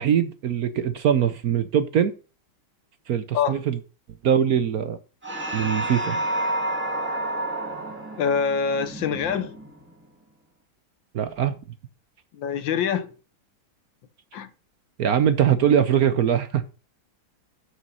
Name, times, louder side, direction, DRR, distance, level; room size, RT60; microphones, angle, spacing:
voice 1, 0.0-2.1 3.1-3.8 4.2-5.0 5.5-6.2 11.1-11.5 15.0-16.6, right 8 dB, 60° right, 1.0 m, -22 dB
sound 1, 5.2-10.0, right 1 dB, 5° right, 2.4 m, -30 dB
voice 2, 8.2-9.6 12.3-13.1 14.3-14.5, left 7 dB, 70° left, 1.5 m, -25 dB
8.3 x 6.2 x 5.6 m
omnidirectional pair, 2.3 m